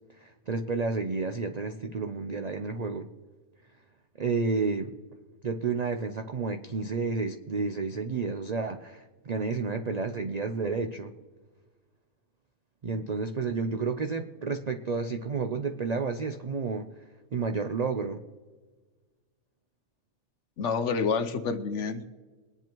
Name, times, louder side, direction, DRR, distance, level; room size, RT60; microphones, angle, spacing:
voice 1, 0.2-3.1 4.2-4.9 5.4-11.1 12.8-16.9 17.3-18.2, right 4 dB, 60° right, 7 dB, 0.4 m, -31 dB
voice 2, 20.6-22.1, left 5 dB, 65° left, 10 dB, 1.0 m, -28 dB
22.0 x 10.5 x 3.0 m, 1.3 s
omnidirectional pair, 1.5 m